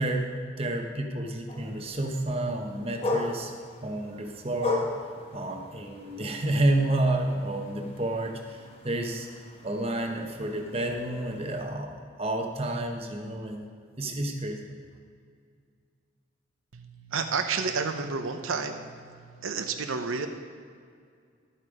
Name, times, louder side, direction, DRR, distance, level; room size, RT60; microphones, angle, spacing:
voice 1, 0.0-3.5 3.8-4.9 5.3-9.3 9.6-13.7 14.0-14.7, right 1 dB, 30° right, 3 dB, 1.0 m, -30 dB
sound 1, 1.5-11.7, left 2 dB, 30° left, 1.2 m, -37 dB
voice 2, 16.7-20.3, right 5 dB, 85° right, 6 dB, 0.8 m, -31 dB
12.0 x 8.6 x 5.0 m, 2.2 s
head